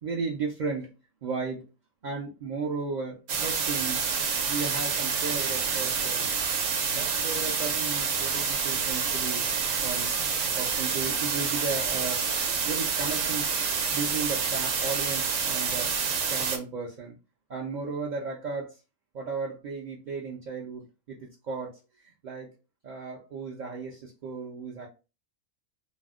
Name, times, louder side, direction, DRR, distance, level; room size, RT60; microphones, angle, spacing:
voice 1, 0.0-0.9 1.2-1.6 2.0-6.3 6.8-9.5 9.8-10.1 10.6-12.2 12.6-13.5 13.9-16.0 16.3-17.2 17.5-18.7 19.1-21.8 22.2-22.5 22.8-24.9, right 4 dB, 65° right, -2 dB, 0.4 m, -35 dB
sound 1, 3.3-16.6, right 6 dB, 80° right, 1.0 m, -28 dB
2.5 x 2.0 x 3.5 m, 0.30 s
omnidirectional pair, 1.3 m